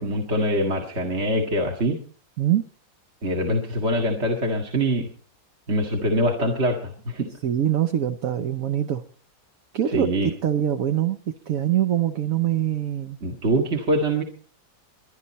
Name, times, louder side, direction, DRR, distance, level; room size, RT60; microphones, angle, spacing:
voice 1, 0.0-2.0 3.2-5.1 5.7-7.3 9.9-10.3 13.2-14.2, right 1 dB, 35° right, 1 dB, 2.1 m, -24 dB
voice 2, 7.4-9.0 9.7-11.2 11.5-13.2, right 11 dB, 55° right, 8 dB, 1.1 m, -23 dB
23.5 x 10.5 x 4.2 m, 0.42 s
omnidirectional pair, 2.0 m